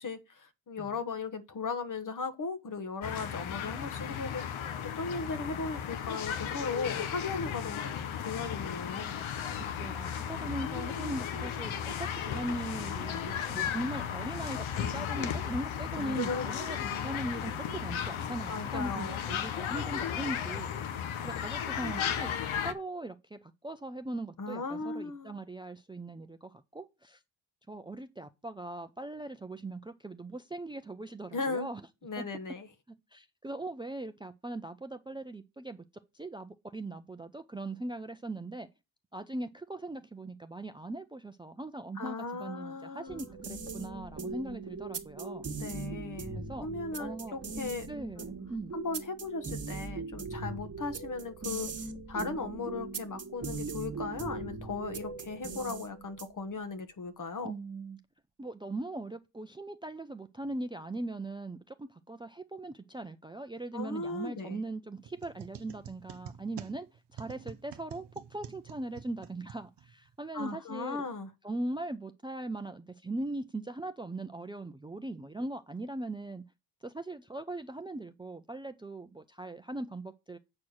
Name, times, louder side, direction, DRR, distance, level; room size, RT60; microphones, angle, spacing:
voice 1, 0.0-4.6 5.0-7.8 8.2-9.1 16.0-16.5 18.5-19.2 24.4-25.3 31.3-31.7 32.0-32.7 42.0-43.2 45.6-47.9 48.2-48.3 48.7-51.7 52.1-57.5 63.7-64.6 70.3-71.3, left 4 dB, 40° left, 1.3 m, -37 dB
sound 1, 3.0-22.7, left 8 dB, 80° left, 1.0 m, -35 dB
voice 2, 9.6-20.7 21.2-22.3 22.6-27.2 27.7-31.8 32.2-32.3 33.1-35.8 36.1-38.7 39.1-45.5 46.4-46.7 47.0-47.4 47.9-48.7 57.4-58.0 58.4-68.0 68.3-71.0 71.4-76.4 76.8-80.4, right 2 dB, 10° right, 0.5 m, -40 dB
sound 2, 43.1-56.5, right 4 dB, 30° right, 1.6 m, -40 dB
sound 3, 65.0-70.1, right 8 dB, 60° right, 0.9 m, -48 dB
8.6 x 4.5 x 6.4 m
cardioid pair, 105°, 47 cm